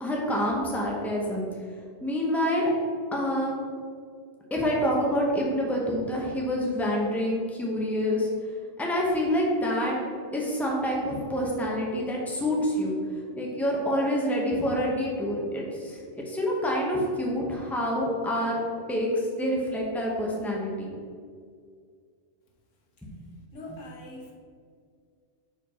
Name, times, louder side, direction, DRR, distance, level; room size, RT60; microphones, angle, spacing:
voice 1, 0.0-1.5 2.0-2.7 3.1-3.5 4.5-8.3 8.8-10.0 10.3-12.9 13.4-18.6 18.9-20.9 23.0-23.1, equal, ahead, -3 dB, 0.9 m, -27 dB
voice 2, 23.5-24.3, left 2 dB, 85° left, 0 dB, 1.4 m, -42 dB
4.8 x 4.5 x 5.5 m, 2.1 s
omnidirectional pair, 1.3 m